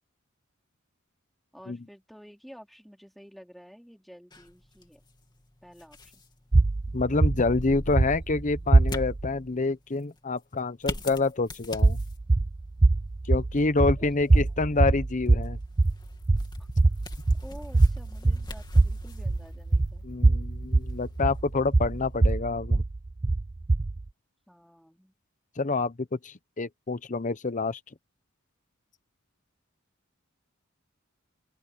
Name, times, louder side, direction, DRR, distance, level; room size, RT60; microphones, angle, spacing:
voice 1, 1.5-5.0 5.6-6.2 13.8-14.4 16.6-16.7 17.4-20.1 24.5-25.1, equal, ahead, 4.4 m, -50 dB
sound 1, 4.3-22.4, left 1 dB, 20° left, 2.8 m, -44 dB
sound 2, 6.5-9.3 11.7-24.1, right 2 dB, 20° right, 0.4 m, -23 dB
voice 2, 6.9-12.0 13.3-15.6 20.0-22.8 25.6-27.8, left 3 dB, 35° left, 0.8 m, -27 dB
sound 3, 15.8-21.3, equal, 70° left, 7.8 m, -49 dB
open air
head